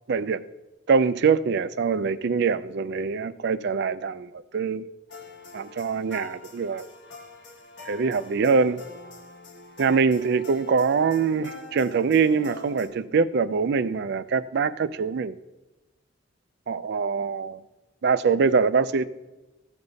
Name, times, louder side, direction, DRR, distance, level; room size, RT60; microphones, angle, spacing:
voice 1, 0.1-0.4 0.9-4.8 5.5-6.8 7.9-8.8 9.8-15.4 16.7-17.6 18.0-19.1, right 5 dB, 60° right, 0.4 m, -23 dB
sound 1, 5.1-12.9, left 3 dB, 65° left, 1.3 m, -44 dB
15.0 x 5.3 x 4.0 m
head